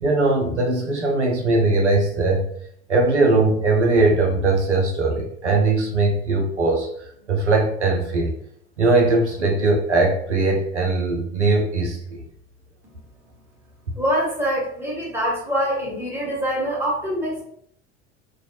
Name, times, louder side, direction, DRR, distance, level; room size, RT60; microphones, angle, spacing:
voice 1, 0.0-2.4 2.9-6.9 7.3-8.3 8.8-12.2, right 3 dB, 90° right, 1 dB, 0.5 m, -20 dB
voice 2, 14.0-17.4, equal, 5° right, -5 dB, 1.4 m, -24 dB
2.6 x 2.1 x 2.8 m, 0.66 s
figure-of-eight pair, 70°, 34 cm